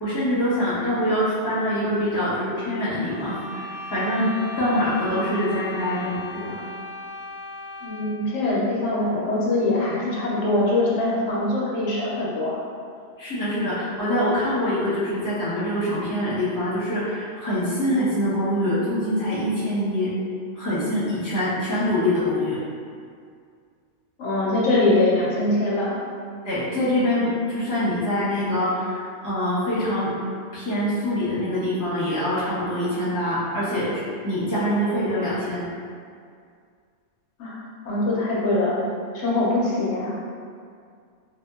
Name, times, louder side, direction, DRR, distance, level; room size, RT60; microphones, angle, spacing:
voice 1, 0.0-6.6 13.2-20.1 20.5-22.6 26.4-30.1 30.5-35.6, left 1 dB, 20° left, -12 dB, 1.0 m, -24 dB
sound 1, 3.0-8.3, left 2 dB, 50° left, 0.8 m, -37 dB
voice 2, 7.8-12.5 24.2-26.0 37.4-37.6 37.8-38.8 39.1-40.1, left 2 dB, 85° left, -6 dB, 0.9 m, -23 dB
2.7 x 2.4 x 2.3 m, 2.2 s
omnidirectional pair, 1.2 m